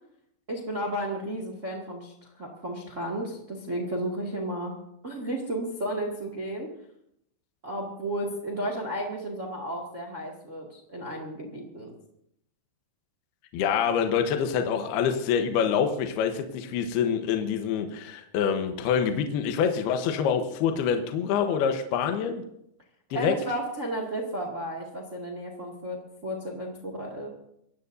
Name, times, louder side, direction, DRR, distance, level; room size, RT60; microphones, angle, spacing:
voice 1, 0.5-2.1 2.4-4.7 5.0-6.7 7.6-11.9 23.1-27.3, right 1 dB, 85° right, 1 dB, 0.6 m, -33 dB
voice 2, 13.5-22.4 23.1-23.3, left 7 dB, 70° left, 5 dB, 2.6 m, -26 dB
24.5 x 17.0 x 2.7 m, 0.75 s
omnidirectional pair, 5.5 m